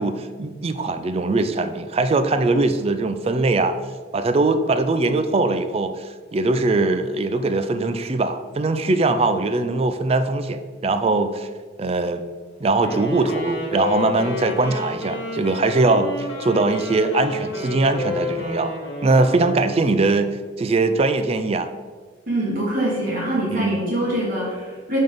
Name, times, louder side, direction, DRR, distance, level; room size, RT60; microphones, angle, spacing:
voice 1, 0.0-3.7 4.1-11.5 11.8-12.2 12.6-18.7 19.0-21.7 23.5-23.8, right 3 dB, 30° right, 10 dB, 0.4 m, -21 dB
Wind instrument woodwind instrument, 12.8-20.0, left 2 dB, 80° left, 1.3 m, -30 dB
voice 2, 22.3-25.0, right 1 dB, 50° right, -5 dB, 1.5 m, -24 dB
5.8 x 3.6 x 5.0 m, 1.4 s
head